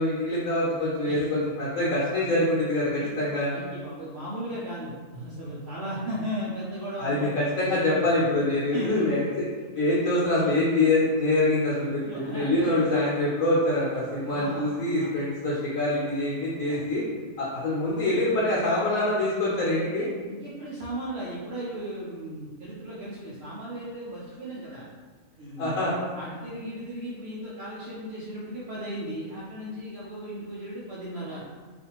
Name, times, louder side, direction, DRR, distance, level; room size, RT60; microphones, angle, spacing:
voice 1, 0.0-3.6 7.0-9.2 9.7-17.0 17.4-20.1 25.6-26.0, left 2 dB, 80° left, -7 dB, 1.1 m, -25 dB
voice 2, 3.5-7.4 8.0-8.2 8.7-9.1 12.0-12.9 14.3-15.1 16.7-16.8 19.9-24.9 25.4-25.9 26.1-31.4, right 1 dB, 60° right, -8 dB, 0.7 m, -36 dB
2.5 x 2.5 x 2.8 m, 1.4 s
omnidirectional pair, 1.4 m